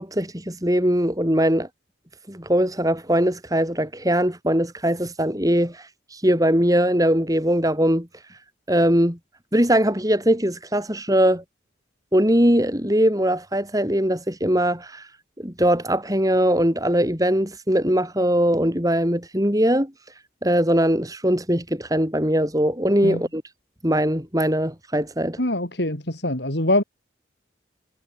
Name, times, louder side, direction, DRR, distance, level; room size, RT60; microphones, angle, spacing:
voice 1, 0.0-1.7 2.3-8.1 8.7-9.2 9.5-11.4 12.1-15.1 15.4-19.9 20.4-23.4 23.8-25.4, equal, 20° right, 7.5 m, -21 dB
voice 2, 25.4-26.8, left 1 dB, 70° left, 6.1 m, -23 dB
head